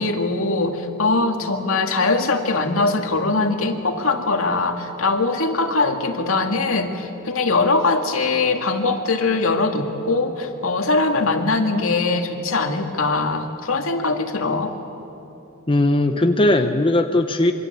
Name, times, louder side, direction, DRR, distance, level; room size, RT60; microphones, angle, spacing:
voice 1, 0.0-14.7, left 3 dB, 75° left, 4 dB, 2.2 m, -21 dB
voice 2, 15.7-17.5, left 1 dB, 25° left, 6 dB, 1.0 m, -18 dB
27.0 x 24.0 x 8.3 m, 3.0 s
head